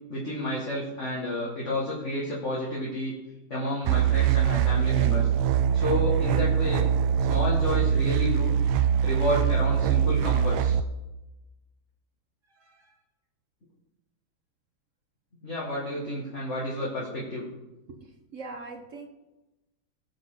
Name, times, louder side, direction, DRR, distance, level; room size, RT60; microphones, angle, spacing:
voice 1, 0.1-3.1 3.5-6.9 7.3-8.5 9.0-10.8 15.4-17.5, left 1 dB, 35° left, -5 dB, 2.4 m, -30 dB
sound 1, 3.8-10.8, right 8 dB, 80° right, 1.3 m, -23 dB
voice 2, 18.3-19.1, right 3 dB, 45° right, 4 dB, 1.2 m, -41 dB
19.5 x 6.6 x 3.9 m, 1.0 s
omnidirectional pair, 2.2 m